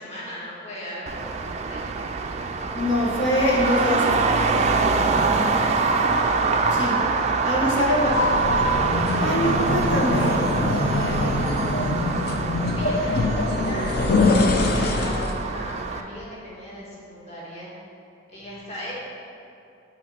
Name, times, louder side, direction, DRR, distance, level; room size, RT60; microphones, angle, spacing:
voice 1, 0.0-2.1 7.4-8.7 9.4-10.0 10.2-12.1 12.6-17.7 18.3-18.9, equal, 35° left, -7 dB, 1.6 m, -38 dB
Traffic noise roadway noise, 1.1-16.0, right 4 dB, 35° right, 0.3 m, -25 dB
voice 2, 2.8-4.3 6.7-7.0 7.4-8.1 9.2-10.4, left 1 dB, 70° left, -2 dB, 1.3 m, -23 dB
sound 1, 7.9-15.4, left 2 dB, 50° left, 0.5 m, -23 dB
6.8 x 4.2 x 6.2 m, 2.6 s
head